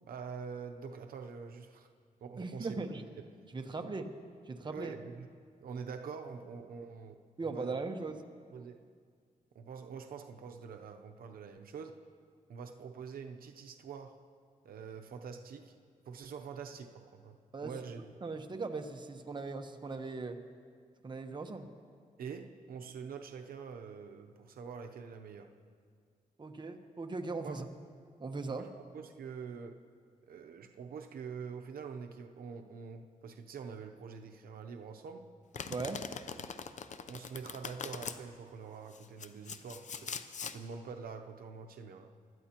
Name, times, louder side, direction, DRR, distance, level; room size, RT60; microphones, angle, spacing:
voice 1, 0.0-1.9 2.2-2.8 4.6-5.3 5.6-7.8 8.5-8.8 9.5-12.0 12.5-14.2 14.6-15.7 16.1-18.0 22.2-25.5 27.4-27.6 28.4-29.8 30.3-35.3 36.4-36.5 37.1-42.1, right 6 dB, 85° right, 5 dB, 0.7 m, -45 dB
voice 2, 2.4-3.1 3.5-4.1 4.5-5.0 7.4-8.2 17.5-17.7 18.2-20.4 21.0-21.7 26.4-27.7 28.2-28.6 35.7-36.0, right 3 dB, 30° right, 5 dB, 1.0 m, -39 dB
Domestic sounds home sounds, 35.5-38.2 38.9-40.6, left 6 dB, 55° left, 0.6 m, -42 dB
24.5 x 12.5 x 2.9 m, 2.1 s
wide cardioid pair, 105°, 15 cm